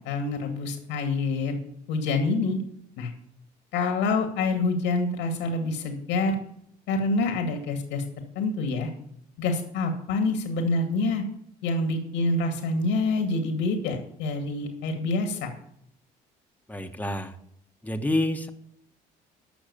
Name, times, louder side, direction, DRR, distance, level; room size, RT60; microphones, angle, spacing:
voice 1, 0.1-1.6 1.9-2.6 3.0-3.1 3.7-6.4 6.9-8.0 8.4-8.9 9.4-11.2 11.6-15.5, left 3 dB, 85° left, 4 dB, 2.0 m, -26 dB
voice 2, 16.7-17.3 17.8-18.5, left 1 dB, 10° left, 6 dB, 1.4 m, -28 dB
13.5 x 6.3 x 7.0 m, 0.71 s
supercardioid pair, 70°, 18 cm